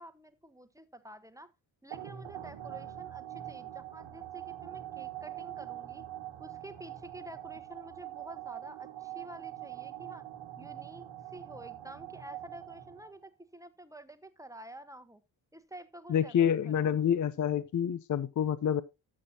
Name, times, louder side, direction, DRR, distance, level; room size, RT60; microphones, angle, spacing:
voice 1, 0.0-1.5 1.8-6.0 6.4-10.3 10.6-15.2 15.5-16.9, right 1 dB, 5° right, 1.0 m, -50 dB
sound 1, 1.9-13.3, right 12 dB, 75° right, 1.6 m, -44 dB
voice 2, 16.1-18.8, left 9 dB, 40° left, 0.6 m, -28 dB
13.5 x 6.5 x 2.7 m
supercardioid pair, 55°, 46 cm